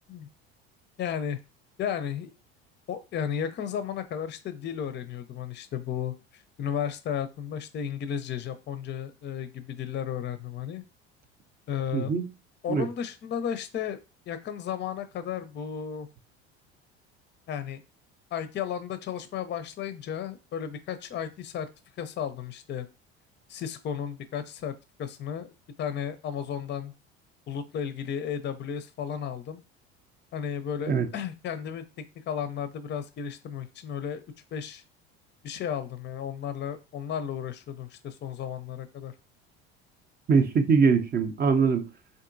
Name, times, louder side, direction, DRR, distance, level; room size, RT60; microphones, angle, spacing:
voice 1, 1.0-1.4 1.8-2.3 2.9-6.1 6.6-10.8 11.7-12.1 12.6-14.0 14.3-16.1 17.5-17.8 18.3-21.7 22.0-22.9 23.5-24.7 25.0-26.9 27.5-29.6 30.3-34.2 34.5-34.8 35.4-39.1, left 8 dB, 35° left, 0.5 m, -34 dB
voice 2, 11.9-12.3 12.7-12.9 30.9-31.1 40.3-41.9, right 5 dB, 30° right, 0.5 m, -22 dB
3.6 x 2.6 x 2.5 m
hypercardioid pair, 75°, 33 cm